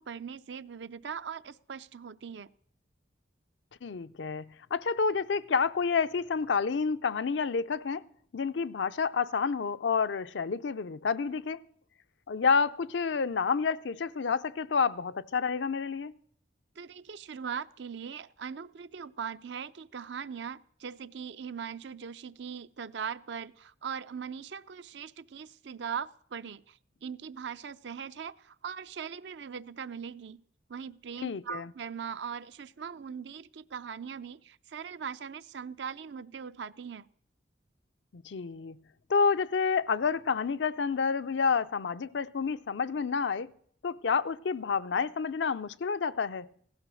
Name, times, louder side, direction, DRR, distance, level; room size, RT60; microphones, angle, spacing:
voice 1, 0.0-2.5 16.8-30.4 30.7-37.1, right 7 dB, 75° right, 0.5 m, -40 dB
voice 2, 3.8-8.0 8.3-11.6 12.3-16.1 31.2-31.7 38.1-38.8 39.1-43.5 43.8-46.5, left 5 dB, 80° left, 0.5 m, -29 dB
16.5 x 12.5 x 6.2 m
head